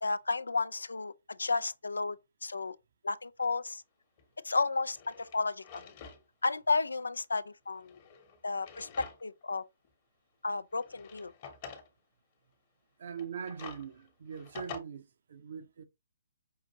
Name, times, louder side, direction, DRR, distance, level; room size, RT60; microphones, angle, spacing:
voice 1, 0.0-2.8 3.0-3.8 4.4-5.9 6.4-8.0 8.4-9.6 10.4-11.3, left 3 dB, 85° left, 0.3 m, -32 dB
Drawer open or close, 4.2-4.3 4.8-6.2 6.6-6.7 7.7-9.4 9.8-9.9 10.7-11.9 13.1-14.8, left 6 dB, 40° left, 1.0 m, -48 dB
voice 2, 13.0-15.8, right 7 dB, 60° right, 0.7 m, -42 dB
5.5 x 2.5 x 2.8 m
figure-of-eight pair, 135°, 0 cm